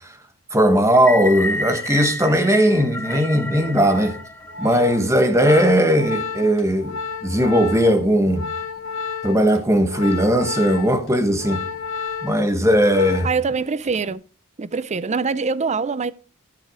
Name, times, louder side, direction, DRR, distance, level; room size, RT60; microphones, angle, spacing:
voice 1, 0.5-4.2 4.6-8.5 9.2-11.7 12.2-13.3, equal, 15° right, 1.4 m, -18 dB
sound 1, 0.9-5.3, left 2 dB, 10° left, 0.7 m, -30 dB
Organ, 3.5-13.5 13.8-14.1, left 5 dB, 70° left, 1.7 m, -32 dB
voice 2, 13.2-14.2 14.6-16.1, right 4 dB, 30° right, 0.5 m, -23 dB
12.5 x 7.0 x 5.0 m
head